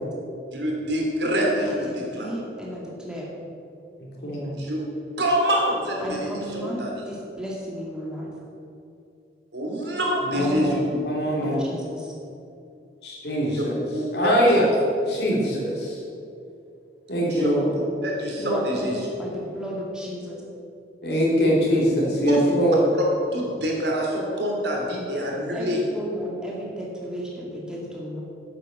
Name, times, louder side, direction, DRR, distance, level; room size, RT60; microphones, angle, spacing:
voice 1, 0.5-2.3 4.6-4.8 5.2-7.0 9.5-10.8 13.5-14.3 15.1-15.2 17.3-17.5 18.0-18.9 22.3-22.4 23.3-25.8, equal, 70° right, -1 dB, 2.9 m, -26 dB
voice 2, 1.7-3.3 6.0-8.3 10.3-10.6 10.9-11.0 11.4-12.1 18.4-20.4 25.5-28.2, equal, 5° right, -4 dB, 2.3 m, -33 dB
voice 3, 4.2-4.5 10.3-10.8 11.0-11.7 13.0-13.8 14.1-14.7 15.0-16.0 17.1-17.7 21.0-22.8, equal, 65° left, -4 dB, 3.3 m, -22 dB
9.7 x 8.4 x 7.3 m, 2.6 s
head